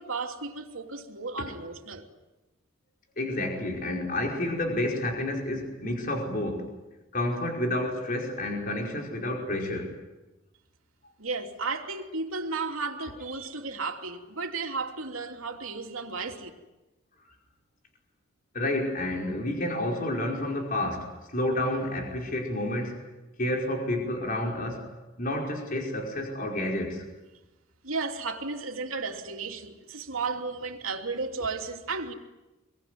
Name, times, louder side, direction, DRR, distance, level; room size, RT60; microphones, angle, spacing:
voice 1, 0.0-2.0 11.2-16.5 27.8-32.1, right 4 dB, 85° right, 3.0 m, -34 dB
voice 2, 3.2-6.7 7.1-9.9 17.2-17.3 18.5-23.0 23.4-24.9 25.2-27.0, left 1 dB, 40° left, 5.2 m, -30 dB
26.0 x 24.0 x 9.4 m
head